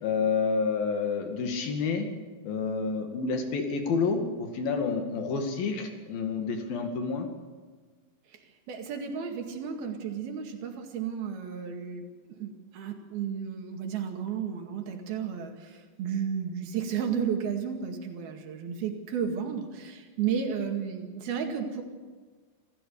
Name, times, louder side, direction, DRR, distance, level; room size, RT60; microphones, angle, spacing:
voice 1, 0.0-2.1 2.4-7.3, left 5 dB, 70° left, 4 dB, 4.0 m, -29 dB
voice 2, 8.7-12.1 12.4-21.8, right 7 dB, 80° right, 4 dB, 4.0 m, -33 dB
26.0 x 15.0 x 6.9 m, 1.4 s
omnidirectional pair, 4.3 m